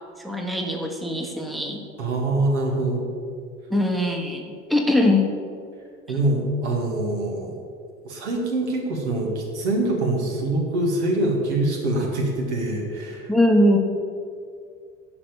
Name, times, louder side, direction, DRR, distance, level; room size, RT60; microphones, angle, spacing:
voice 1, 0.2-1.8 3.7-5.3 13.3-13.8, left 1 dB, ahead, 2 dB, 1.1 m, -21 dB
voice 2, 2.0-3.0 6.1-7.6 8.0-13.3, right 2 dB, 70° right, 0 dB, 2.2 m, -24 dB
11.0 x 5.3 x 6.9 m, 2.2 s
figure-of-eight pair, 65°, 36 cm